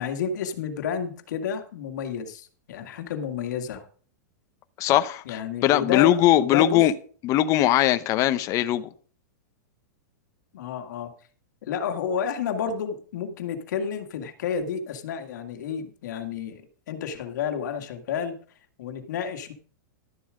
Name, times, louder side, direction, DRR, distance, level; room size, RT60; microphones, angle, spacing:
voice 1, 0.0-3.9 5.3-6.9 10.5-11.1 11.6-16.6 16.9-18.4 18.8-19.5, left 7 dB, 70° left, 1.8 m, -30 dB
voice 2, 4.8-6.9 7.2-8.9, left 13 dB, 30° left, 0.7 m, -20 dB
12.0 x 7.1 x 5.0 m
hypercardioid pair, 140°, 10 cm